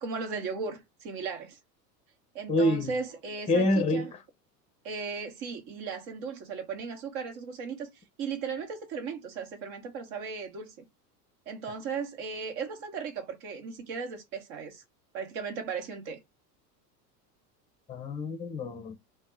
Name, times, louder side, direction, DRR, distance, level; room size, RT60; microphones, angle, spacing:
voice 1, 0.0-1.6 2.3-4.1 4.8-7.9 8.2-10.9 11.5-14.8 15.1-16.2, right 5 dB, 55° right, 1.1 m, -36 dB
voice 2, 2.5-2.9 3.5-4.1 17.9-18.9, left 1 dB, 15° left, 0.5 m, -26 dB
2.7 x 2.2 x 3.3 m
hypercardioid pair, 85°, 48 cm